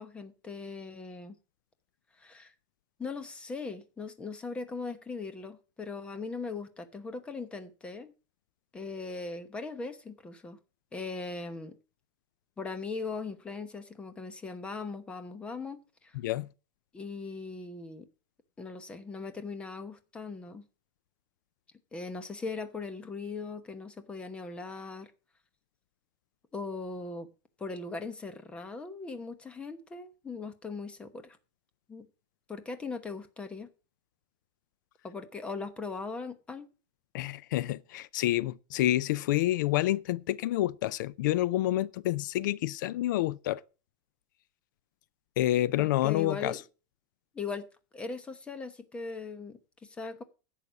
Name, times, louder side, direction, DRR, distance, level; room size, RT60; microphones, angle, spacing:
voice 1, 0.0-1.4 2.2-2.5 3.0-8.1 8.7-10.6 10.9-11.8 12.6-16.2 16.9-18.1 18.6-20.6 21.9-25.1 26.5-27.3 27.6-31.4 31.9-32.1 32.5-33.7 35.0-36.7 46.0-46.6 47.3-47.7 47.9-50.2, left 4 dB, 10° left, 1.0 m, -39 dB
voice 2, 16.1-16.5 37.1-43.6 45.4-46.6, left 15 dB, 75° left, 0.5 m, -28 dB
11.0 x 8.3 x 6.1 m
supercardioid pair, 175°, 10 cm